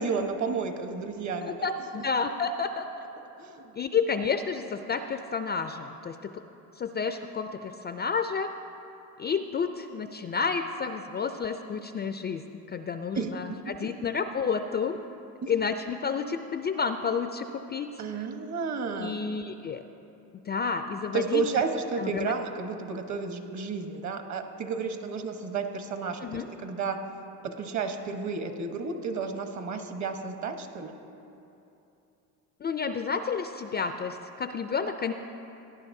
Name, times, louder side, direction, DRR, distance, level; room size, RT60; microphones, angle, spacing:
voice 1, 0.0-1.5 3.4-3.6 13.2-13.3 15.4-15.5 18.0-19.2 21.1-27.0 27.4-30.9, right 5 dB, 45° right, 6 dB, 1.1 m, -32 dB
voice 2, 1.4-2.8 3.8-6.4 6.8-8.5 9.2-12.4 12.7-15.0 15.5-17.9 19.0-19.8 20.5-21.4 22.0-22.3 26.2-26.5 32.6-35.1, left 5 dB, 30° left, 8 dB, 0.3 m, -30 dB
17.5 x 10.5 x 2.7 m, 2.8 s
cardioid pair, 95°, 39 cm